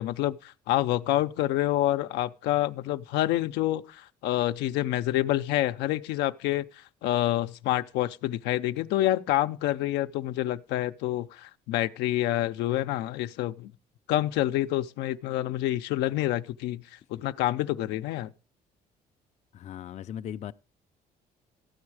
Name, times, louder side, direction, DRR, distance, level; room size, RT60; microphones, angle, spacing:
voice 1, 0.0-13.7 14.1-16.8 17.1-18.3, left 14 dB, 85° left, 0.6 m, -27 dB
voice 2, 19.5-20.5, left 10 dB, 45° left, 0.5 m, -38 dB
13.5 x 8.7 x 4.8 m
cardioid pair, 110°, 17 cm